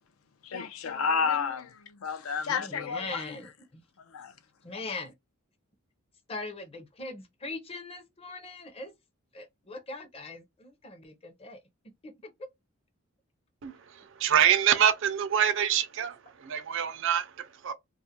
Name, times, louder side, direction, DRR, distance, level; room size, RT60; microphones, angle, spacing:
voice 1, 0.4-3.4 4.0-4.3 4.7-4.8, left 5 dB, 90° left, 0.5 m, -31 dB
voice 2, 2.5-3.8 4.6-5.1 6.3-8.9 9.3-11.6 12.0-12.1 12.4-12.5, left 3 dB, 30° left, 0.6 m, -40 dB
voice 3, 14.2-17.7, right 9 dB, 60° right, 0.4 m, -25 dB
2.4 x 2.0 x 2.8 m
head